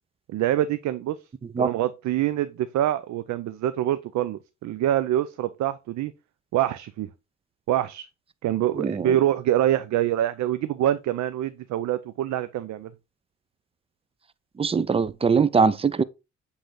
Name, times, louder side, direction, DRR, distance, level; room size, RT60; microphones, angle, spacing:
voice 1, 0.3-1.2 1.6-6.1 6.5-7.1 7.7-8.1 8.4-12.9, right 12 dB, 70° right, 0.5 m, -25 dB
voice 2, 8.7-9.2 14.6-16.0, right 5 dB, 20° right, 0.4 m, -22 dB
7.8 x 3.3 x 3.7 m
cardioid pair, 90°, 30 cm